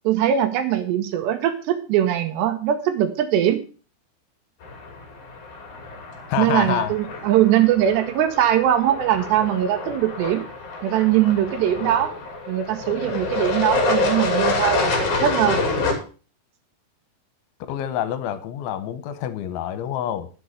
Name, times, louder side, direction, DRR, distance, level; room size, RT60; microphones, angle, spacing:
voice 1, 0.0-3.6 6.4-10.4 10.8-12.1 12.5-15.6, right 11 dB, 75° right, 8 dB, 2.8 m, -21 dB
sound 1, 4.6-15.9, left 3 dB, 45° left, 3.6 m, -27 dB
voice 2, 6.3-6.9 17.7-20.3, left 11 dB, 80° left, 12 dB, 3.3 m, -27 dB
11.0 x 7.1 x 6.4 m, 0.37 s
omnidirectional pair, 5.5 m